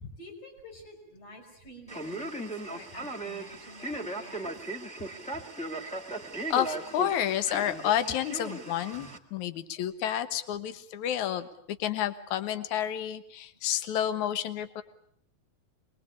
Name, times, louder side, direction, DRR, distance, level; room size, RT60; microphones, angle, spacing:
voice 1, 0.2-4.5, left 1 dB, 45° left, 2 dB, 6.7 m, -49 dB
Male speech man speaking, 1.9-9.2, right 2 dB, 5° left, 0.7 m, -37 dB
voice 2, 6.5-14.8, left 10 dB, 65° left, 12 dB, 2.4 m, -30 dB
26.5 x 22.0 x 8.6 m, 0.66 s
omnidirectional pair, 4.0 m